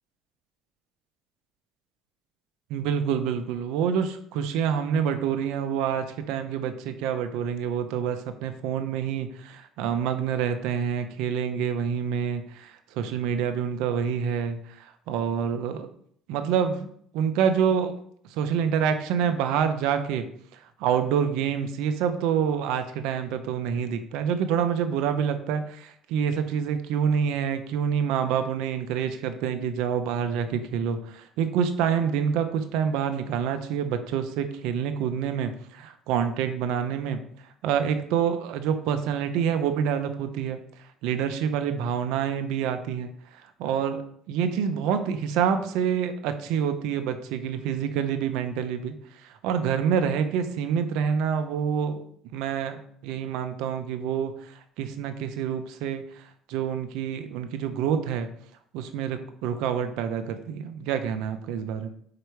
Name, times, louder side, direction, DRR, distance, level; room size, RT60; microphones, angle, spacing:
voice 1, 2.7-15.9 16.3-16.9 17.1-17.9 18.3-20.3 20.8-37.2 37.6-40.6 41.0-43.1 43.6-49.0 49.2-52.0 52.3-52.8 53.0-56.2 56.5-58.3 58.7-61.9, right 7 dB, 80° right, 8 dB, 0.7 m, -27 dB
4.9 x 4.7 x 4.6 m, 0.64 s
supercardioid pair, 90°, 0 cm